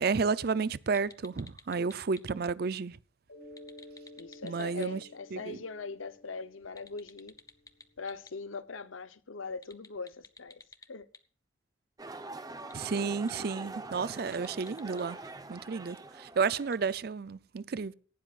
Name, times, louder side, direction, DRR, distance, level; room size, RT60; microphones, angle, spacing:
voice 1, 0.0-3.0 4.4-5.0 5.3-5.6 12.7-15.2 15.5-17.9, right 5 dB, 50° right, 0.5 m, -31 dB
sound 1, 0.9-2.2 3.4-4.9 6.6-8.3 9.5-11.2 12.6-13.5 14.1-15.0 16.5-16.7, left 4 dB, 20° left, 0.7 m, -51 dB
Mallet percussion, 3.3-7.7, left 1 dB, 65° left, 4.9 m, -53 dB
voice 2, 4.2-7.3 8.0-10.6 10.9-11.1, left 4 dB, 85° left, 0.8 m, -41 dB
sound 2, 12.0-16.9, right 2 dB, 20° right, 0.8 m, -44 dB
18.0 x 12.0 x 2.5 m
head